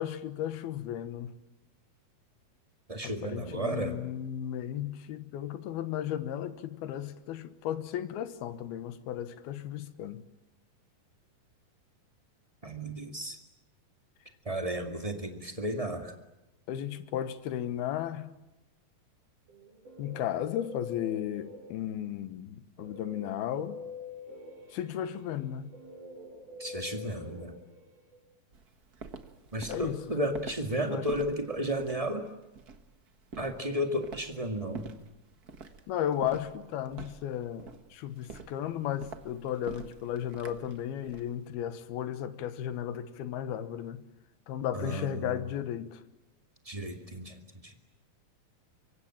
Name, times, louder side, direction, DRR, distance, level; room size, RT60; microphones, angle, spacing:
voice 1, 0.0-1.3 3.0-10.3 16.7-18.3 20.0-23.8 24.7-25.7 29.7-30.0 30.8-31.3 35.9-44.0 44.5-46.0, left 10 dB, 85° left, 3.2 m, -35 dB
voice 2, 2.9-4.0 12.6-13.4 14.4-16.1 26.6-27.5 29.5-32.3 33.4-34.9 44.7-45.4 46.6-47.7, right 1 dB, 20° right, 0.9 m, -33 dB
Guitar, 19.5-22.0 22.8-28.2, left 3 dB, 55° right, 5.8 m, -46 dB
Walk footsteps, 28.5-41.3, right 5 dB, 85° right, 0.8 m, -46 dB
25.0 x 24.0 x 8.9 m
omnidirectional pair, 4.4 m